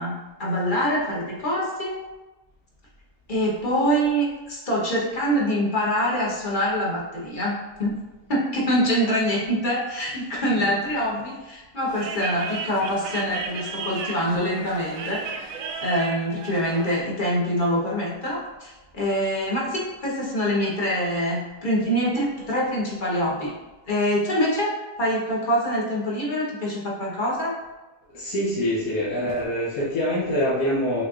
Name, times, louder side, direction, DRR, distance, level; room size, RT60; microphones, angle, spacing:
voice 1, 0.0-1.9 3.3-8.0 8.3-15.5 15.8-23.5 23.9-24.7 25.0-27.5, equal, 35° left, -5 dB, 1.1 m, -25 dB
sound 1, 11.9-17.0, right 5 dB, 70° right, 0.9 m, -34 dB
voice 2, 28.1-31.0, equal, 75° left, -7 dB, 1.3 m, -25 dB
5.5 x 3.3 x 2.4 m, 1.1 s
omnidirectional pair, 1.6 m